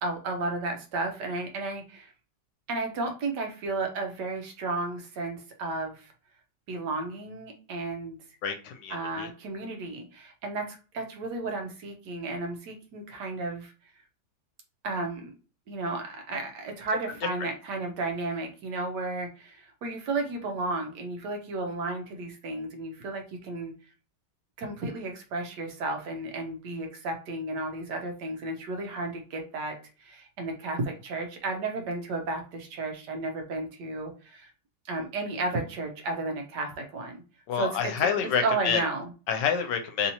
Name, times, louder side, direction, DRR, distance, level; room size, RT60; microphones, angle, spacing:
voice 1, 0.0-2.1 2.7-6.1 6.7-8.2 8.9-13.7 14.8-15.3 15.7-23.7 24.6-34.5 34.9-37.2 37.6-38.1 38.4-39.1, right 2 dB, 75° right, 3 dB, 1.4 m, -33 dB
voice 2, 8.4-9.3 37.5-38.8 39.3-40.1, left 7 dB, 80° left, 6 dB, 1.3 m, -28 dB
3.4 x 2.7 x 2.8 m, 0.35 s
omnidirectional pair, 1.9 m